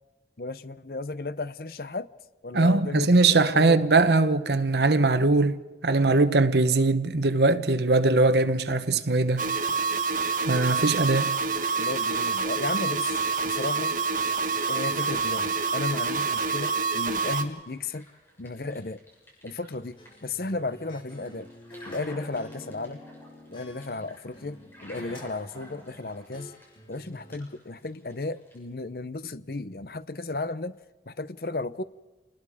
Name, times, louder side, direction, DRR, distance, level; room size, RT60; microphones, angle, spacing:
voice 1, 0.4-2.1 2.4-3.8 11.8-14.0 14.7-18.1 18.4-19.0 19.4-21.5 21.9-23.0 23.5-26.5 26.9-30.8 31.1-31.8, left 3 dB, 55° left, 0.8 m, -34 dB
voice 2, 2.5-9.5 10.5-11.3, right 3 dB, 70° right, 1.1 m, -21 dB
sound 1, 9.4-17.4, right 4 dB, 45° right, 1.7 m, -27 dB
sound 2, 13.2-28.6, equal, 15° left, 7.1 m, -52 dB
sound 3, 20.0-22.0 22.3-25.3 25.5-27.4, left 1 dB, 30° left, 2.9 m, -47 dB
28.5 x 20.5 x 5.0 m
head